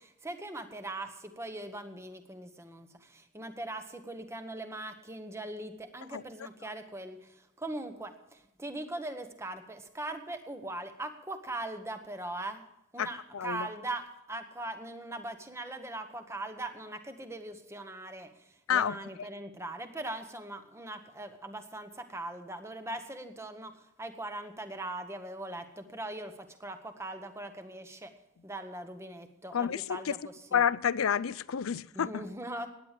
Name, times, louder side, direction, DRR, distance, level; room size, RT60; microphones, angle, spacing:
voice 1, 0.0-12.6 12.9-28.1 28.4-30.2 30.5-30.6 31.9-32.7, right 2 dB, 15° right, 8 dB, 1.1 m, -40 dB
voice 2, 6.1-6.5 13.0-13.7 18.7-19.3 29.5-30.2 30.5-32.3, left 8 dB, 70° left, 18 dB, 0.5 m, -30 dB
16.5 x 10.5 x 5.0 m, 0.86 s
head